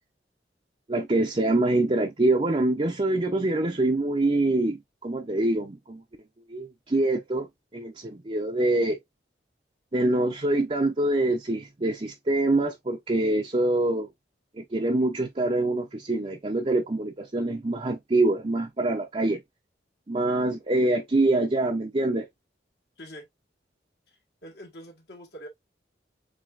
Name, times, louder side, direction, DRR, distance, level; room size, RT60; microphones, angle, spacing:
voice 1, 0.9-6.0 6.5-7.5 7.7-9.0 9.9-14.1 14.6-19.4 20.1-22.3, right 2 dB, 30° right, 0.6 m, -25 dB
voice 2, 24.1-25.5, equal, 65° left, 1.7 m, -45 dB
7.3 x 2.9 x 2.4 m
head